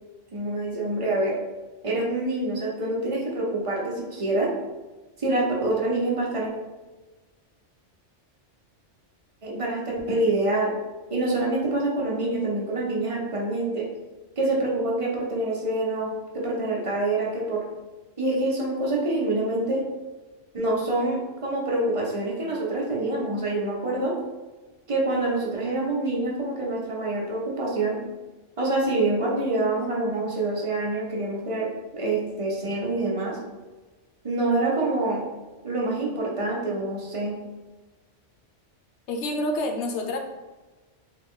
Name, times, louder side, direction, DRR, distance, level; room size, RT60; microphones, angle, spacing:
voice 1, 0.3-1.4 1.8-4.5 5.2-6.5 9.4-10.7 11.1-13.8 14.4-17.6 18.2-19.8 20.5-24.1 24.9-28.0 28.6-33.4 34.2-35.2 35.6-37.4, right 2 dB, 35° right, -3 dB, 0.6 m, -26 dB
voice 2, 39.1-40.2, left 1 dB, 75° left, 3 dB, 0.9 m, -27 dB
3.2 x 2.2 x 3.6 m, 1.2 s
omnidirectional pair, 1.2 m